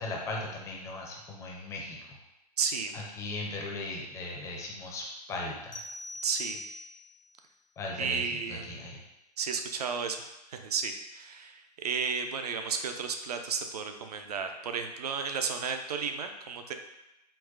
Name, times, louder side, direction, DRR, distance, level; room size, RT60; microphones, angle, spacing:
voice 1, 0.0-2.2 2.9-5.8 7.8-9.0, left 2 dB, 15° left, -1 dB, 0.4 m, -38 dB
voice 2, 2.6-2.9 6.2-6.6 8.0-8.7 9.4-10.2 10.5-16.7, right 6 dB, 65° right, 6 dB, 0.4 m, -33 dB
sound 1, 5.7-7.2, left 1 dB, 85° left, 0.5 m, -41 dB
3.9 x 2.1 x 2.4 m, 0.93 s
figure-of-eight pair, 105°, 21 cm